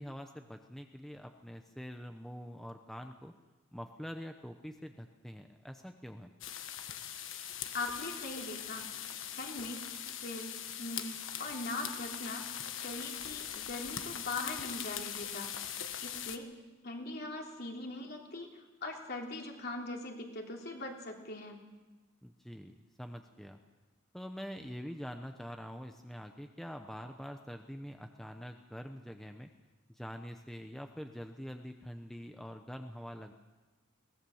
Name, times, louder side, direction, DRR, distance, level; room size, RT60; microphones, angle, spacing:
voice 1, 0.0-3.3 3.7-6.3 22.2-23.6 24.1-29.5 29.9-33.3, equal, ahead, 5 dB, 0.8 m, -45 dB
sound 1, 6.4-16.4, left 9 dB, 65° left, 1.4 m, -41 dB
voice 2, 7.7-8.9 9.3-9.8 10.2-12.4 12.7-15.5 16.0-16.5 16.8-21.6, left 2 dB, 50° left, 1 dB, 3.2 m, -41 dB
22.0 x 18.5 x 7.2 m, 1.2 s
head